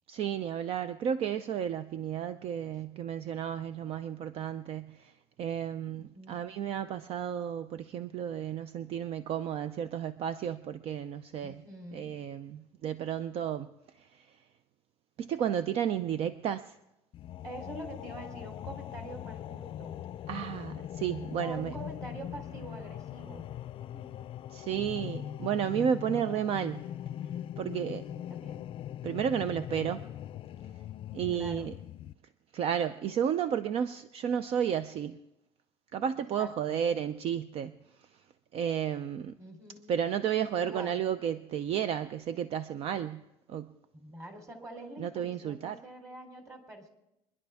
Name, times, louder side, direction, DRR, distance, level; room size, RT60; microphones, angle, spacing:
voice 1, 0.1-5.1 5.4-11.6 11.9-13.7 14.0-14.3 15.2-16.7 20.3-21.7 24.5-26.9 27.6-28.0 29.0-30.0 31.1-31.7 32.5-35.2 35.9-37.8 38.5-39.4 39.9-43.2 43.5-43.7 45.0-45.8, right 9 dB, 55° right, 12 dB, 0.5 m, -32 dB
voice 2, 5.9-6.4 11.4-12.1 17.4-19.9 21.4-23.5 23.9-24.2 28.1-28.6 31.3-31.7 36.4-36.8 39.4-40.0 40.6-41.0 43.9-46.9, right 1 dB, 25° right, 4 dB, 3.3 m, -45 dB
sound 1, 17.1-32.1, left 11 dB, 50° left, 0.4 m, -41 dB
25.0 x 10.5 x 3.5 m, 0.91 s
cardioid pair, 105°, 12 cm